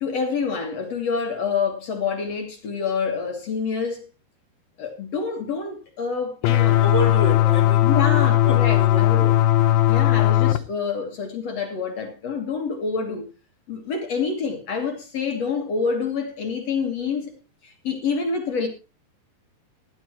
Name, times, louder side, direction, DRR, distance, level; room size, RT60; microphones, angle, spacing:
voice 1, 0.0-4.0 4.8-6.8 7.8-9.2 9.9-13.3 13.7-17.3 17.6-18.7, left 5 dB, 50° left, 2.2 m, -27 dB
sound 1, 6.4-10.6, left 13 dB, 75° left, 2.3 m, -18 dB
voice 2, 6.8-9.4 9.7-9.9, equal, 65° right, 0.7 m, -30 dB
17.0 x 10.5 x 3.0 m
omnidirectional pair, 4.8 m